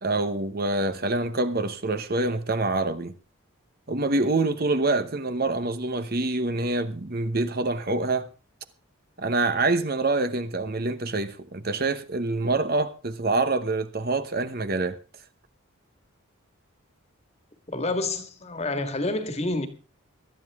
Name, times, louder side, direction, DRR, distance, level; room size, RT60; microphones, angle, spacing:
voice 1, 0.0-3.1 3.9-8.3 9.2-15.0, right 2 dB, 45° right, 1.0 m, -26 dB
voice 2, 17.7-19.7, left 2 dB, 30° left, 1.8 m, -28 dB
18.5 x 13.0 x 3.6 m
head